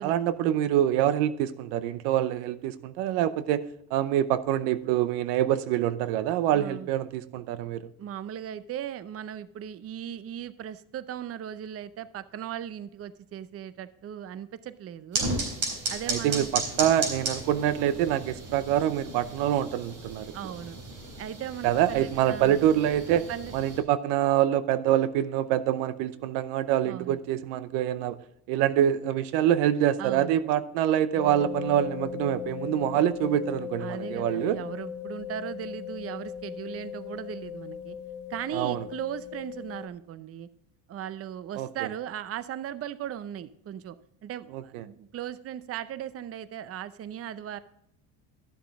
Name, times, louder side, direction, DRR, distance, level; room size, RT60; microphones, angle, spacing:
voice 1, 0.0-3.7 3.9-7.9 16.1-20.3 21.6-23.3 23.5-28.2 28.5-34.6 38.5-38.9 41.6-41.7 44.5-44.8, right 11 dB, 80° right, 14 dB, 0.7 m, -25 dB
voice 2, 6.5-6.9 8.0-15.3 15.9-16.5 20.3-20.8 21.2-22.6 23.3-23.5 26.8-27.2 30.0-30.4 33.8-38.0 38.3-40.5 40.9-44.0 44.2-47.6, right 10 dB, 35° right, 15 dB, 0.6 m, -37 dB
sound 1, 15.1-23.8, right 3 dB, 55° right, 3.9 m, -35 dB
sound 2, 31.1-39.9, left 9 dB, 55° left, 1.9 m, -38 dB
12.5 x 7.4 x 3.5 m, 0.77 s
supercardioid pair, 90°, 41 cm